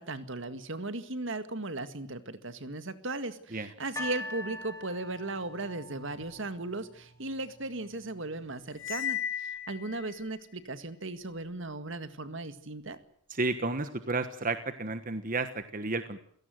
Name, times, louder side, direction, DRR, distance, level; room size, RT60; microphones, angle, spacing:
voice 1, 0.0-13.0, right 2 dB, 60° right, 11 dB, 2.0 m, -37 dB
sound 1, 4.0-7.1 7.9-8.0, left 2 dB, 15° left, 5.5 m, -42 dB
Cymbal, 8.8-10.2, left 10 dB, 65° left, 4.7 m, -35 dB
voice 2, 13.3-16.2, right 3 dB, 40° right, 10 dB, 1.3 m, -32 dB
29.0 x 17.5 x 7.8 m, 0.63 s
head